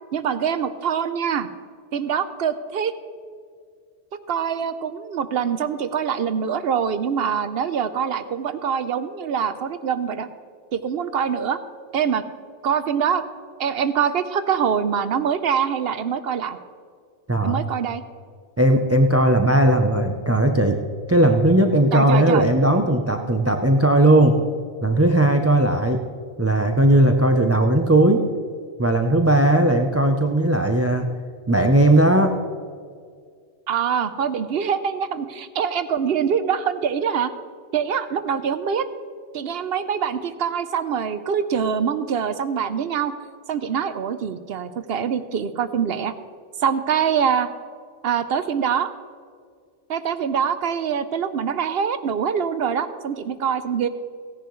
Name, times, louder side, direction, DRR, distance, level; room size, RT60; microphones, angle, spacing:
voice 1, 0.1-1.5 1.9-2.9 4.3-10.3 10.7-11.6 11.9-12.2 12.6-13.2 13.6-16.6 17.4-18.0 21.9-22.4 33.7-37.3 37.7-38.9 39.3-43.1 43.5-46.1 46.6-47.5 48.0-48.9 49.9-53.9, right 7 dB, 65° right, 11 dB, 0.8 m, -24 dB
voice 2, 17.3-17.6 18.6-20.8 21.1-24.4 24.8-26.0 26.4-28.2 28.8-31.1 31.5-32.4, right 1 dB, 20° right, 5 dB, 0.5 m, -17 dB
17.0 x 10.5 x 3.1 m, 2.1 s
omnidirectional pair, 1.2 m